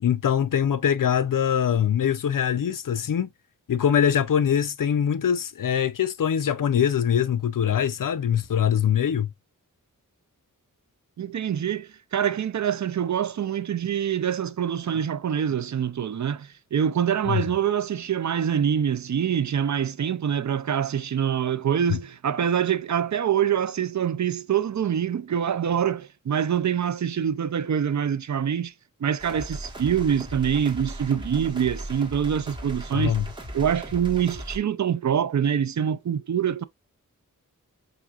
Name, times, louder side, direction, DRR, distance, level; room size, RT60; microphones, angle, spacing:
voice 1, 0.0-3.3 3.7-9.3 17.3-17.4 32.9-33.2, left 8 dB, 75° left, 0.5 m, -23 dB
voice 2, 11.2-28.7 29.0-33.1 33.5-36.6, right 8 dB, 60° right, 0.5 m, -25 dB
sound 1, 29.2-34.6, right 1 dB, 15° right, 1.4 m, -37 dB
5.9 x 2.7 x 2.3 m
wide cardioid pair, 75°, 33 cm